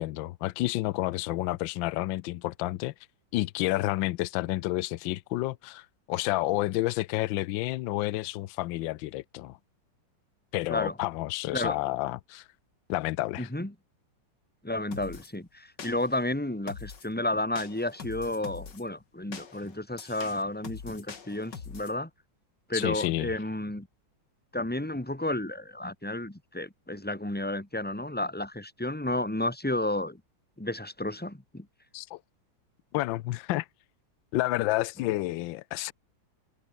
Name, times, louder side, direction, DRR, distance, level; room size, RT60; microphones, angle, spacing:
voice 1, 0.0-2.9 3.3-9.6 10.5-12.5 12.9-13.5 22.7-23.3 31.9-32.2 32.9-33.7 34.3-35.9, left 17 dB, 85° left, 1.3 m, -30 dB
voice 2, 13.4-13.7 14.6-22.1 22.7-23.9 24.5-30.2 30.6-31.7, left 1 dB, 5° left, 2.4 m, -32 dB
sound 1, 14.9-15.3 15.8-16.2 16.7-17.1 17.6-18.8 19.3-22.0, left 6 dB, 65° left, 2.8 m, -43 dB
open air
omnidirectional pair, 2.1 m